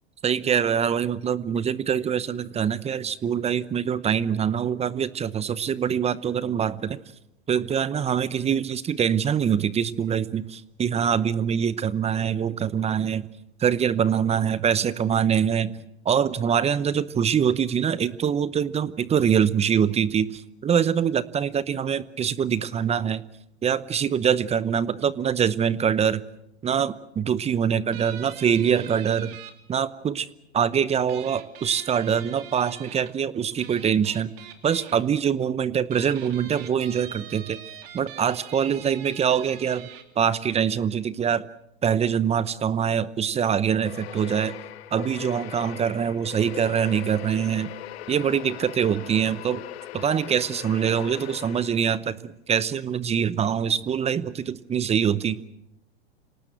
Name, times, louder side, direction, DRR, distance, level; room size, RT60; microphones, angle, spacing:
voice 1, 0.2-7.0 7.5-13.3 13.6-15.7 16.0-23.2 23.6-26.2 26.6-29.3 29.7-30.3 30.5-34.3 34.6-37.6 37.9-39.9 40.2-41.5 41.8-44.5 44.9-47.7 48.1-49.6 49.9-55.4, right 8 dB, 20° right, 18 dB, 0.8 m, -24 dB
sound 1, 27.9-29.5 31.1-33.1 33.6-35.0 35.8-40.0, right 10 dB, 60° right, 3.1 m, -43 dB
sound 2, 43.8-52.1, left 13 dB, 70° left, 1.2 m, -40 dB
26.5 x 18.5 x 7.8 m, 0.82 s
hypercardioid pair, 105°, 33 cm